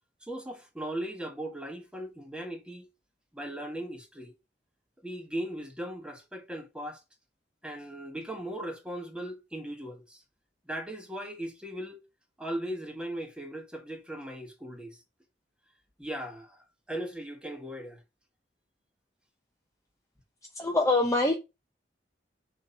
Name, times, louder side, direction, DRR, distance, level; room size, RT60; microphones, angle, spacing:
voice 1, 0.2-2.9 3.3-4.3 5.0-7.0 7.6-10.2 10.7-12.0 12.4-15.0 16.0-18.0, right 1 dB, 5° right, 1.3 m, -38 dB
voice 2, 20.6-21.4, left 2 dB, 20° left, 0.7 m, -24 dB
4.5 x 4.2 x 5.6 m
head